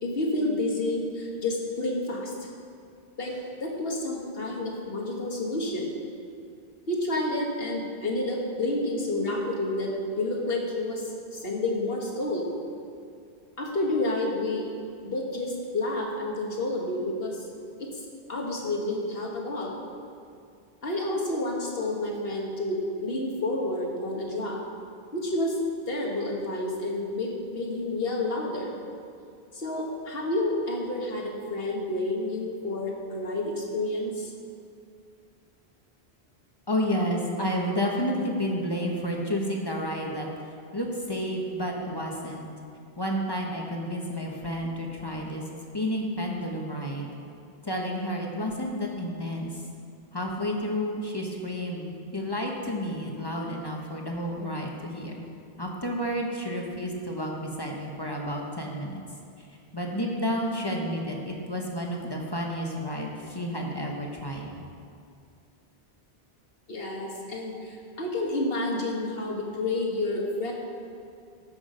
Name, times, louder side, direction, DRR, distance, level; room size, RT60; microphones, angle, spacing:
voice 1, 0.0-2.5 3.2-5.9 6.9-12.5 13.6-14.7 15.0-17.4 17.8-18.0 18.3-19.8 20.8-24.6 25.1-25.6 25.9-28.7 29.5-34.3 66.7-70.5, left 2 dB, 65° left, -1 dB, 1.7 m, -29 dB
voice 2, 36.7-40.3 40.7-42.5 43.0-45.4 45.7-47.1 47.6-49.6 50.1-55.2 55.6-59.0 59.4-59.5 59.7-64.5, equal, 25° left, -1 dB, 1.1 m, -31 dB
13.5 x 6.1 x 5.1 m, 2.4 s
omnidirectional pair, 1.1 m